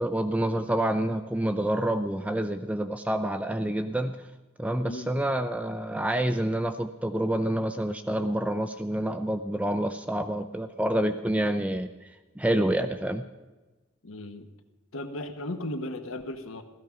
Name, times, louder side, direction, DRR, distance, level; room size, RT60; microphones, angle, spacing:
voice 1, 0.0-4.2 4.6-11.9 12.4-13.2, right 1 dB, 5° right, 9 dB, 0.4 m, -28 dB
voice 2, 4.9-5.3 14.0-14.5 14.9-16.6, left 1 dB, 80° left, 7 dB, 1.2 m, -36 dB
16.0 x 13.5 x 5.8 m, 1.2 s
head